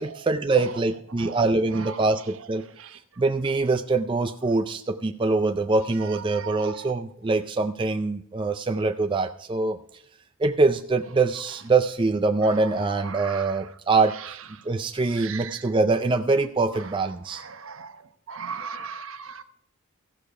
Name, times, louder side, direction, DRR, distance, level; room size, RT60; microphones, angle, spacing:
voice 1, 0.0-2.6 3.2-9.8 10.4-14.4 14.7-17.4, right 3 dB, 20° right, 0.4 m, -24 dB
voice 2, 0.5-2.5 2.7-3.0 5.9-7.0 12.4-13.8 14.1-14.7 15.1-15.7 16.7-19.4, right 6 dB, 65° right, 0.9 m, -39 dB
15.0 x 6.7 x 4.9 m
head